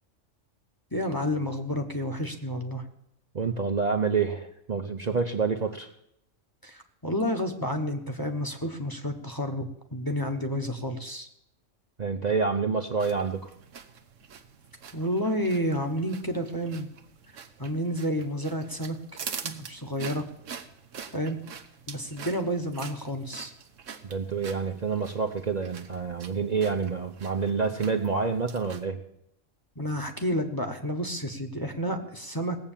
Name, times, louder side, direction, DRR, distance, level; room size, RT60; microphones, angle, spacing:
voice 1, 0.9-2.8 6.6-11.3 14.9-16.9 17.6-19.0 19.4-20.2 21.1-21.4 21.9-23.5 29.8-32.6, equal, 20° left, 4 dB, 1.1 m, -30 dB
voice 2, 3.3-5.9 12.0-13.5 24.0-29.0, right 5 dB, 40° right, 4 dB, 0.8 m, -28 dB
sound 1, 13.0-28.8, right 7 dB, 80° right, 1.3 m, -45 dB
18.5 x 7.9 x 7.3 m, 0.78 s
omnidirectional pair, 1.3 m